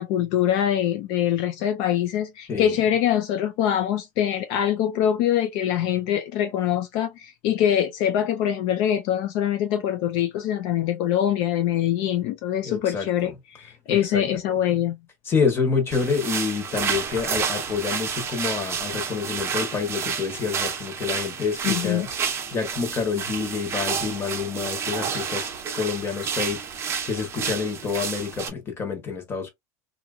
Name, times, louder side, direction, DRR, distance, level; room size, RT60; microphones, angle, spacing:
voice 1, 0.0-13.3 13.6-15.0 21.6-22.1, left 10 dB, 60° left, 0.5 m, -24 dB
voice 2, 2.5-2.8 12.6-13.4 13.9-14.2 15.2-22.1 22.5-25.5 25.7-26.6 27.0-29.5, left 5 dB, 25° left, 1.1 m, -27 dB
sound 1, 15.9-28.5, right 6 dB, 30° right, 0.7 m, -30 dB
2.8 x 2.5 x 2.4 m
supercardioid pair, 140°, 9 cm